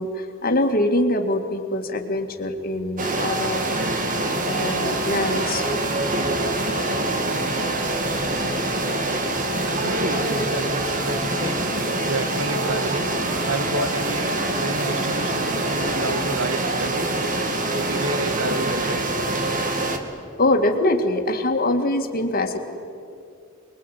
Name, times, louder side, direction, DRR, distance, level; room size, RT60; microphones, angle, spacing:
voice 1, 0.0-3.6 4.5-5.6 8.5-8.6 17.6-17.9 20.4-22.6, left 1 dB, 45° left, 5 dB, 2.1 m, -23 dB
sound 1, 3.0-20.0, right 2 dB, 40° right, 2.2 m, -24 dB
voice 2, 9.8-11.7 12.1-13.1 13.4-17.1 17.7-19.0, right 2 dB, 70° right, 10 dB, 1.4 m, -30 dB
25.5 x 22.0 x 9.2 m, 2.5 s
head